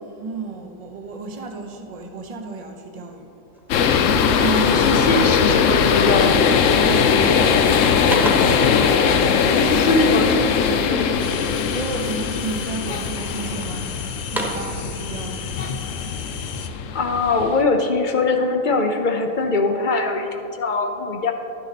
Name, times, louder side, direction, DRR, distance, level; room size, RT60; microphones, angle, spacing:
voice 1, 0.0-3.3 4.2-5.3 6.8-7.8 9.4-10.0 11.7-15.8, right 3 dB, 30° right, 3 dB, 0.8 m, -32 dB
sound 1, 3.5-3.7 4.0-5.5 6.2-6.5 6.8-7.3 7.7-8.7 10.2-11.4 11.9-12.6 13.1-13.7 14.1-14.8, right 1 dB, ahead, 1.2 m, -33 dB
sound 2, 3.7-17.6, left 6 dB, 65° left, 0.9 m, -20 dB
voice 2, 4.6-6.6 8.7-9.1 9.6-10.4 10.9-11.1 16.9-21.3, left 3 dB, 45° left, 5 dB, 0.6 m, -22 dB
sound 3, 11.2-16.7, left 6 dB, 85° left, 0.4 m, -33 dB
11.5 x 9.7 x 4.1 m, 2.8 s
omnidirectional pair, 1.6 m